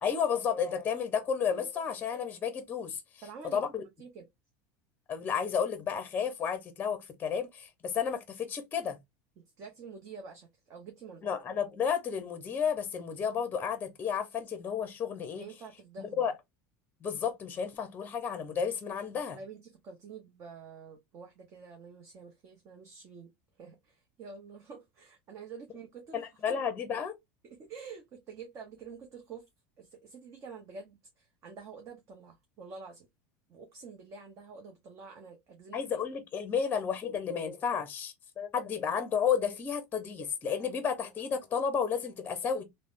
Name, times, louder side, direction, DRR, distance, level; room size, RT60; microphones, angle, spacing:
voice 1, 0.0-3.0 3.5-3.8 5.1-9.0 11.2-15.5 16.0-16.3 17.0-19.4 26.1-27.1 35.7-42.6, left 7 dB, 25° left, 0.6 m, -32 dB
voice 2, 3.2-4.2 9.4-11.2 15.4-16.3 19.3-23.3 23.6-26.2 27.4-29.4 29.8-33.1 33.5-36.0, right 5 dB, 40° right, 0.8 m, -48 dB
3.2 x 2.1 x 2.4 m
supercardioid pair, 120°, 8 cm